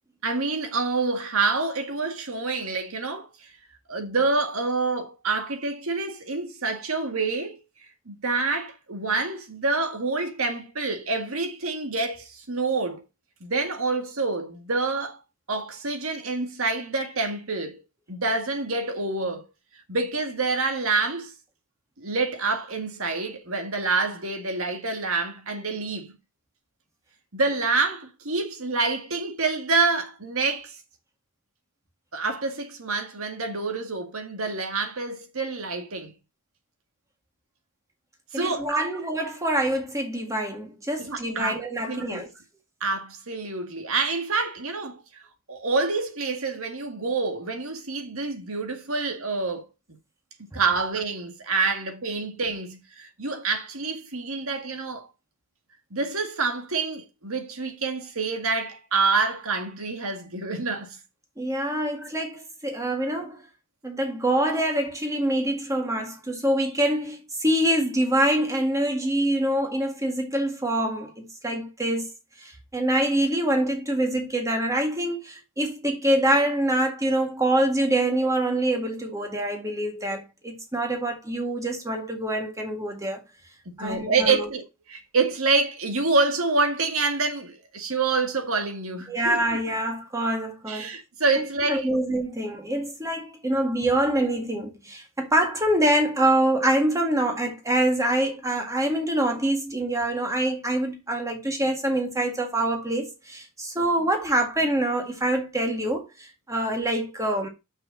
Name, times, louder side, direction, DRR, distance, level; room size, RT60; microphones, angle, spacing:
voice 1, 0.2-3.5 3.9-7.6 8.1-13.0 13.4-15.2 15.5-17.8 18.1-19.5 19.9-21.3 22.0-26.1 27.3-30.8 32.1-36.1 38.3-38.8 41.0-41.6 41.9-42.3 42.8-45.2 45.5-49.7 50.5-55.1 55.9-61.0 62.0-62.1 83.8-84.6 84.9-89.6 90.7-92.0, right 3 dB, 80° right, 1.9 m, -27 dB
voice 2, 38.3-42.3 61.4-63.4 63.8-72.1 72.4-83.2 83.8-84.5 89.1-90.9 91.4-107.5, right 1 dB, 15° right, 1.9 m, -25 dB
6.3 x 5.2 x 6.2 m
head